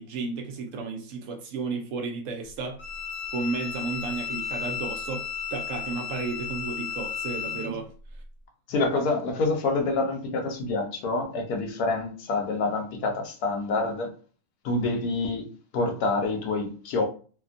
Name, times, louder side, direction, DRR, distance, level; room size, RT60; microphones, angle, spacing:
voice 1, 0.0-2.8 3.3-7.9, right 4 dB, 70° right, 0.9 m, -33 dB
Bowed string instrument, 2.8-7.7, left 7 dB, 60° left, 0.9 m, -34 dB
voice 2, 8.7-14.1 14.6-17.0, left 3 dB, 85° left, 1.2 m, -27 dB
3.3 x 2.2 x 2.4 m
omnidirectional pair, 1.6 m